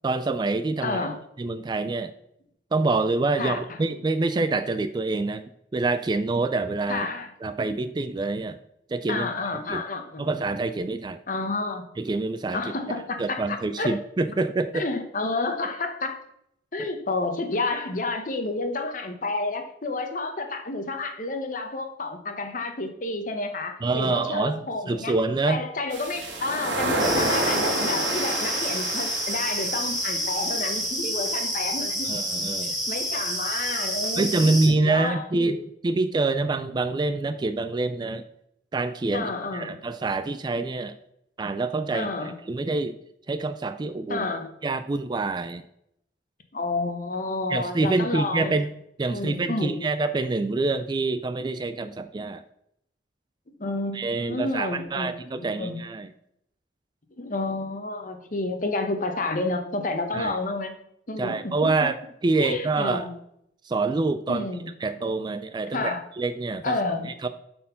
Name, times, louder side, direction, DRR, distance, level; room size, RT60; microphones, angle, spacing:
voice 1, 0.0-1.0 1.4-2.1 2.7-5.4 5.7-7.1 7.4-8.6 8.9-9.3 9.7-9.8 10.2-11.2 12.0-12.6 13.2-14.8 16.8-16.9 23.8-25.6 32.1-32.7 34.2-35.6 35.8-38.2 38.7-41.0 41.4-42.1 42.5-42.9 43.3-44.3 44.6-45.6 47.5-48.7 49.0-52.4 53.9-56.1 60.1-60.3 61.2-63.1 63.6-64.5 64.8-66.8 67.0-67.3, right 3 dB, 25° right, 11 dB, 0.3 m, -26 dB
voice 2, 0.8-1.2 3.4-3.8 6.9-7.3 9.1-10.3 11.3-11.9 12.5-14.0 14.7-16.2 16.7-25.1 25.5-32.1 32.6-35.6 39.1-39.8 41.9-42.4 44.1-44.5 46.5-48.5 49.1-49.8 53.6-55.1 55.3-55.8 57.2-60.7 61.1-61.7 62.4-63.1 64.3-64.7 65.7-66.0 66.6-67.1, left 3 dB, 45° left, 6 dB, 1.0 m, -30 dB
sound 1, 25.9-30.8, right 1 dB, 80° right, 1.5 m, -29 dB
sound 2, 27.0-34.7, equal, ahead, 2.2 m, -29 dB
7.3 x 4.4 x 5.7 m, 0.76 s
head